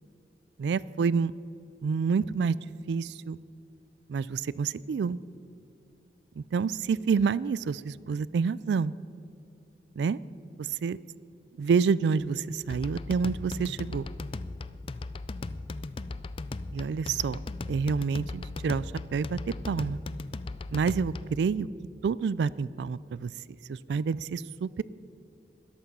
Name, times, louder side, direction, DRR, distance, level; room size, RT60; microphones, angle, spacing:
voice 1, 0.6-1.3 1.8-2.6 2.9-3.4 4.1-5.2 6.4-8.9 10.0-10.2 10.6-11.0 11.6-14.1 16.7-17.4 17.7-18.9 19.1-20.0 20.7-21.7 22.0-23.3 23.7-24.8, right 5 dB, 75° right, 20 dB, 0.3 m, -28 dB
sound 1, 12.7-21.4, left 3 dB, 30° left, 0.3 m, -38 dB
13.5 x 11.5 x 5.5 m, 2.7 s
head